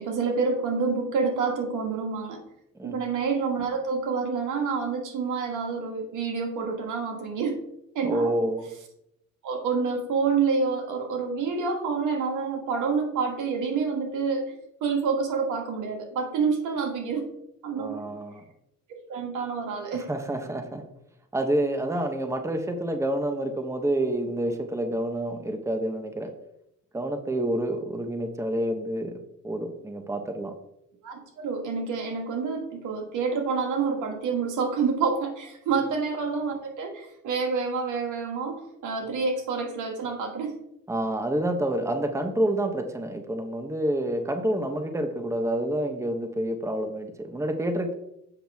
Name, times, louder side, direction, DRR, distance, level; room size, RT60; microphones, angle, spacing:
voice 1, 0.0-2.4 2.8-7.6 8.0-8.3 9.4-14.5 14.8-17.3 17.6-18.1 19.1-20.1 31.0-40.5, right 5 dB, 80° right, 3 dB, 1.8 m, -28 dB
voice 2, 8.0-8.7 17.8-18.4 19.9-20.8 21.3-26.3 26.9-30.5 40.9-47.9, right 1 dB, 10° right, 6 dB, 1.0 m, -28 dB
7.9 x 6.0 x 3.5 m, 0.80 s
cardioid pair, 90°, 30 cm